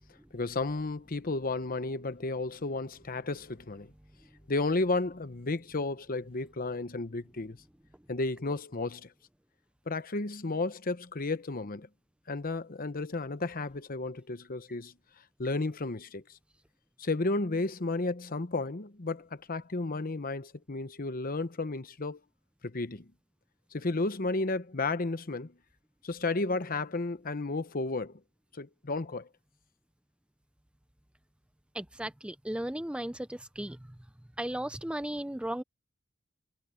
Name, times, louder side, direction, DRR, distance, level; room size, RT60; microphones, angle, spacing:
voice 1, 0.3-3.9 4.5-7.6 8.1-9.1 9.9-11.9 12.3-14.9 15.4-16.2 17.0-22.2 22.6-23.1 23.7-25.5 26.0-28.2 28.5-29.3, left 3 dB, 45° left, 1.0 m, -33 dB
voice 2, 31.7-33.8 34.4-35.6, right 1 dB, 5° right, 0.5 m, -35 dB
head